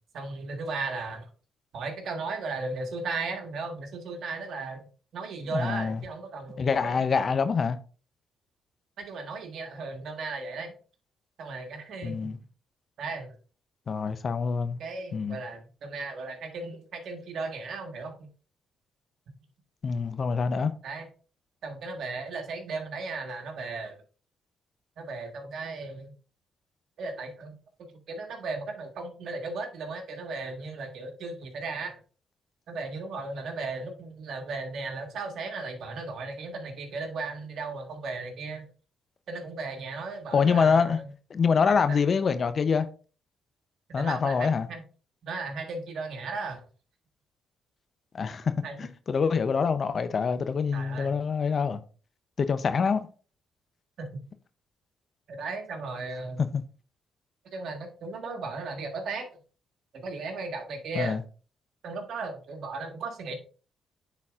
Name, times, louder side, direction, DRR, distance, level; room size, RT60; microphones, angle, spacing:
voice 1, 0.1-1.3 1.7-4.8 5.1-7.2 9.0-10.7 11.4-12.3 13.0-13.3 14.8-18.3 20.8-21.0 21.6-24.0 25.0-26.1 27.0-27.5 28.1-32.0 32.7-38.7 39.3-41.1 41.9-42.0 43.9-44.8 45.2-46.6 48.6-48.8 50.7-51.1 54.0-54.2 55.3-56.4 57.5-59.3 59.9-61.2 61.8-63.4, right 3 dB, 70° right, 1.6 m, -36 dB
voice 2, 5.5-6.0 6.6-7.8 12.0-12.4 13.9-14.8 15.1-15.4 19.8-20.7 40.3-41.0 41.3-42.9 43.9-44.7 48.1-51.8 52.4-53.1 56.4-56.6 60.9-61.2, left 5 dB, 50° left, 0.6 m, -25 dB
9.7 x 4.1 x 2.4 m
supercardioid pair, 60°, 0 cm